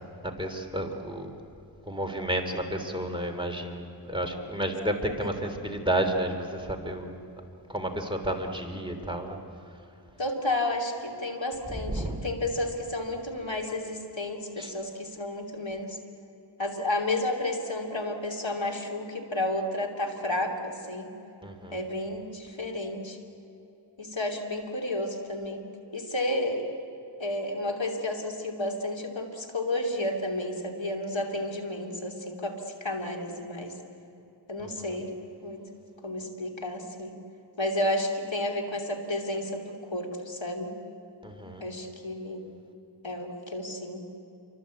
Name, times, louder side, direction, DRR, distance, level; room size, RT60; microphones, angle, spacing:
voice 1, 0.2-1.3 1.9-7.1 7.7-9.4 11.7-12.2 14.6-14.7 21.4-21.8 34.6-35.0 41.2-41.6, right 1 dB, 10° right, 3 dB, 3.1 m, -31 dB
voice 2, 10.2-16.0 16.6-21.1 21.7-23.2 24.0-25.6 25.9-26.6 27.2-33.8 34.5-35.1 35.4-35.6 36.0-37.2 37.6-40.7 41.6-42.4 43.0-44.0, left 1 dB, 70° left, 2 dB, 3.0 m, -31 dB
28.5 x 24.0 x 8.4 m, 2.9 s
wide cardioid pair, 50°, 47 cm